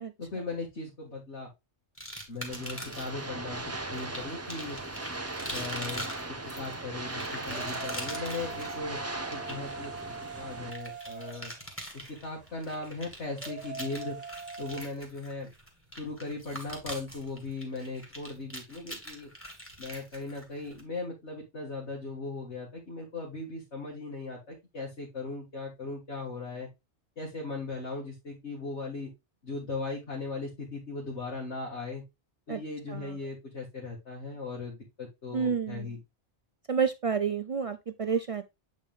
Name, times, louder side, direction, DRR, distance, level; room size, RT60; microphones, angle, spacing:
voice 1, 0.2-1.5 2.3-4.8 5.5-6.1 6.6-9.0 9.3-9.9 10.4-11.5 11.9-14.2 14.6-15.5 15.9-19.3 19.8-26.7 27.2-29.1 29.4-32.0 32.5-36.0, left 3 dB, 85° left, 2.2 m, -38 dB
sound 1, 2.0-3.2 3.9-20.8, equal, 10° left, 1.9 m, -43 dB
sound 2, 2.5-10.7, right 2 dB, 15° right, 0.7 m, -38 dB
sound 3, 4.4-14.8, right 4 dB, 35° right, 1.7 m, -45 dB
voice 2, 35.3-35.9 36.7-38.4, right 6 dB, 65° right, 0.3 m, -29 dB
8.1 x 4.2 x 3.5 m
omnidirectional pair, 1.2 m